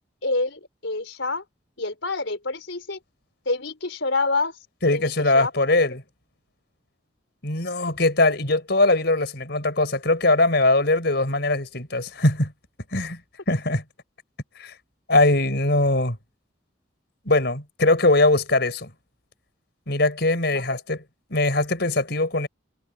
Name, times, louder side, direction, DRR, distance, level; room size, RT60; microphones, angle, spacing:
voice 1, 0.2-1.4 1.8-3.0 3.5-4.5 4.9-5.5 5.8-5.9 20.5-20.6, left 3 dB, 80° left, 4.1 m, -27 dB
voice 2, 4.8-6.0 7.4-12.5 12.9-13.2 13.5-13.8 14.6-14.7 15.1-16.2 17.3-18.9 19.9-21.0 21.3-22.5, left 2 dB, 60° left, 5.6 m, -21 dB
head